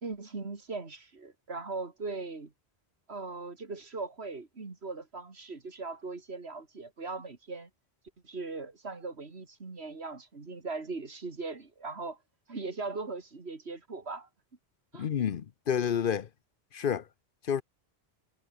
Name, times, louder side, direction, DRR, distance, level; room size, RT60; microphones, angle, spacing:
voice 1, 0.0-2.5 3.1-7.7 8.2-12.2 12.5-14.3 14.9-15.1, right 3 dB, 75° right, 2.7 m, -39 dB
voice 2, 14.9-16.3 16.7-17.0 17.4-17.6, left 8 dB, 60° left, 0.8 m, -29 dB
omnidirectional pair, 1.1 m